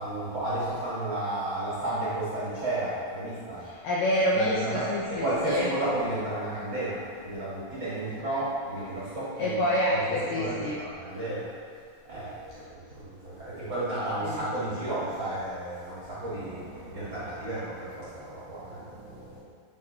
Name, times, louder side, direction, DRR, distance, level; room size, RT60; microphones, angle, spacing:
voice 1, 0.0-3.6 4.3-9.6 9.9-10.0 10.3-11.5 12.1-19.4, right 1 dB, 45° right, -11 dB, 1.8 m, -32 dB
voice 2, 3.6-5.7 9.4-10.8 14.2-14.4, left 1 dB, 80° left, -5 dB, 2.0 m, -27 dB
10.0 x 4.2 x 4.2 m, 2.1 s
omnidirectional pair, 4.8 m